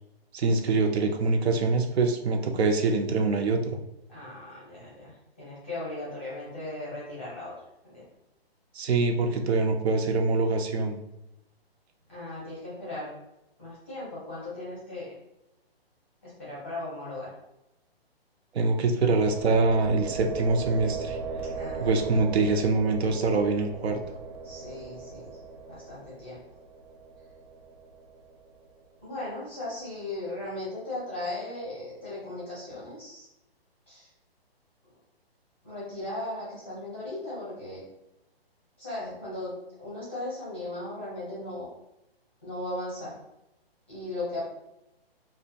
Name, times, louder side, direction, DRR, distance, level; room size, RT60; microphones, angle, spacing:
voice 1, 0.3-3.8 8.7-11.0 18.5-21.2 21.8-24.0, right 3 dB, 85° right, 5 dB, 0.6 m, -24 dB
voice 2, 4.1-7.5 7.8-8.0 12.1-13.1 13.6-15.2 16.2-17.3 21.5-22.1 24.4-25.4 25.7-26.4 29.0-33.3 33.9-34.1 35.6-37.8 38.8-41.7 42.4-43.2 43.9-44.4, left 2 dB, 10° left, -9 dB, 0.6 m, -37 dB
sound 1, 19.0-28.8, right 4 dB, 40° right, 0.4 m, -38 dB
2.5 x 2.1 x 2.7 m, 0.88 s
hypercardioid pair, 175°, 31 cm